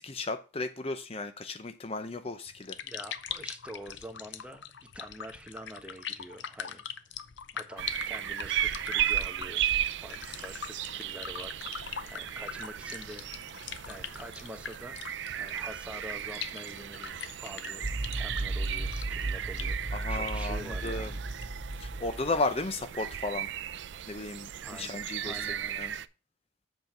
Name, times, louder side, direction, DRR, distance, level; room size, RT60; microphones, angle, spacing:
voice 1, 0.0-2.8 19.9-21.1 21.8-23.5 24.1-25.3 25.8-25.9, left 3 dB, 30° left, 0.6 m, -34 dB
sound 1, 2.5-21.6, left 8 dB, 70° left, 0.7 m, -43 dB
voice 2, 2.8-4.7 4.9-6.8 7.5-9.6 9.9-17.9 18.2-21.2 24.6-25.8, equal, 5° right, 0.9 m, -46 dB
sound 2, 7.8-26.1, right 10 dB, 65° right, 0.4 m, -36 dB
sound 3, 17.8-22.7, right 2 dB, 30° right, 1.2 m, -35 dB
7.9 x 4.6 x 6.6 m
head